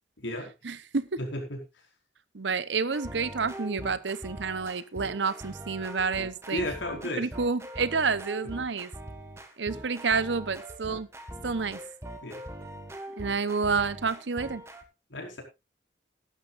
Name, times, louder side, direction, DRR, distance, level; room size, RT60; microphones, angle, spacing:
voice 1, 0.6-1.2 2.3-6.7 7.2-8.9 9.6-11.1 11.4-11.8 13.2-14.6, right 4 dB, 75° right, 16 dB, 0.9 m, -29 dB
voice 2, 1.2-1.6 6.5-7.3 12.2-12.4 15.1-15.4, left 1 dB, 90° left, 2 dB, 4.7 m, -33 dB
sound 1, 2.9-14.8, right 1 dB, 15° right, 1.6 m, -42 dB
16.0 x 12.0 x 2.5 m, 0.24 s
head